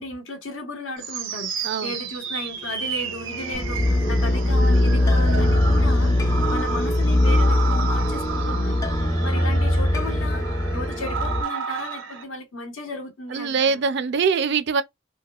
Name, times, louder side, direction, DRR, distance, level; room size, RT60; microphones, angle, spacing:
voice 1, 0.0-8.8 9.2-10.4 10.7-13.8, left 2 dB, 85° left, 1.3 m, -35 dB
sound 1, 1.0-12.2, right 6 dB, 85° right, 0.8 m, -32 dB
sound 2, 2.6-11.4, equal, 20° left, 0.4 m, -26 dB
sound 3, 3.5-11.2, left 1 dB, 55° left, 0.9 m, -22 dB
voice 2, 13.3-14.8, right 5 dB, 60° right, 0.4 m, -23 dB
4.7 x 2.2 x 2.3 m
head